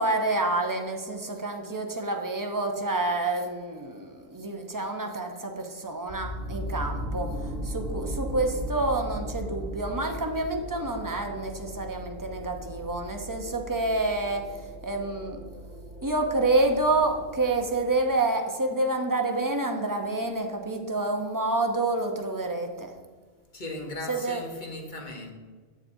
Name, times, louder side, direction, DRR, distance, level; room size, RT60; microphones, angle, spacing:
voice 1, 0.0-15.4 16.0-22.9 24.1-24.4, right 2 dB, 25° right, 0.5 m, -28 dB
sound 1, 6.1-18.0, equal, 55° right, 1.5 m, -37 dB
voice 2, 23.5-25.3, left 2 dB, 45° left, 1.1 m, -37 dB
8.4 x 7.5 x 2.7 m
omnidirectional pair, 1.2 m